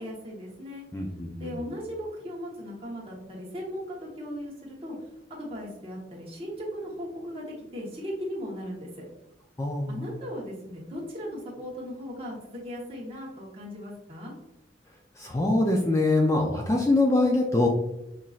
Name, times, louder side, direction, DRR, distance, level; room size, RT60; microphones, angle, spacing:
voice 1, 0.0-0.8 1.4-5.0 5.3-9.0 9.9-14.3, equal, 30° right, -4 dB, 1.1 m, -37 dB
voice 2, 0.9-1.6 9.6-10.0 15.2-17.7, left 2 dB, 15° left, 0 dB, 0.3 m, -24 dB
5.6 x 2.5 x 2.4 m, 0.90 s
head